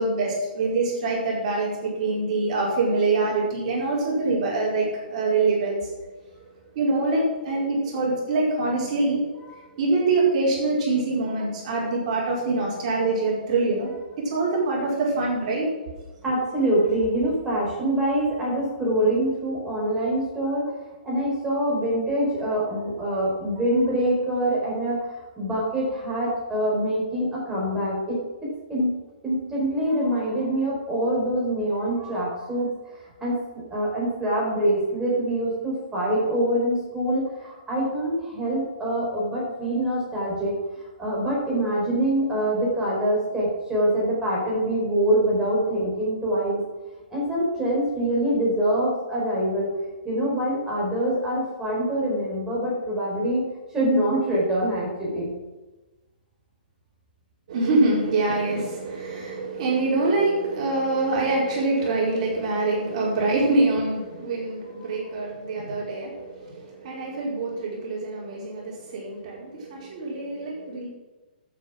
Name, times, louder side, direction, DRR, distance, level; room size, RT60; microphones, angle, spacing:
voice 1, 0.0-6.0 6.7-9.2 9.8-13.9 14.2-15.7 16.1-16.2 57.5-70.9, right 3 dB, 40° right, -4 dB, 4.8 m, -25 dB
voice 2, 16.2-20.7 21.0-28.2 28.4-28.9 29.2-33.4 33.7-40.5 41.0-46.6 47.1-49.7 50.0-53.4 53.7-55.3, right 1 dB, 10° right, -5 dB, 4.5 m, -25 dB
11.5 x 8.0 x 6.3 m, 1.2 s
hypercardioid pair, 160°, 5 cm